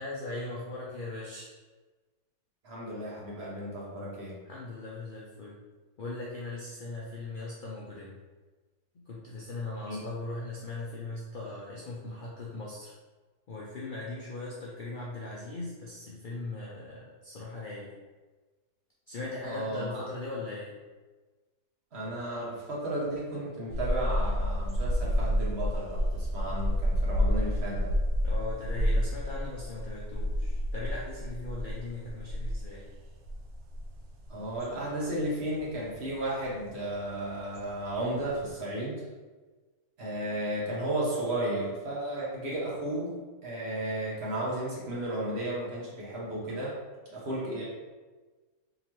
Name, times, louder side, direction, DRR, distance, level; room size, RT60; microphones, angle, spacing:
voice 1, 0.0-1.5 4.5-5.6 6.0-8.2 8.9-12.9 13.5-17.9 19.1-20.8 28.2-32.9, left 2 dB, 85° left, -5 dB, 0.4 m, -39 dB
voice 2, 2.6-4.4 9.9-10.0 19.4-20.0 21.9-27.9 34.3-39.0 40.0-46.8 47.1-47.6, right 1 dB, 50° right, -5 dB, 1.1 m, -34 dB
sound 1, 23.7-38.5, equal, 70° right, 0.8 m, -30 dB
3.8 x 3.0 x 3.0 m, 1.3 s
omnidirectional pair, 1.6 m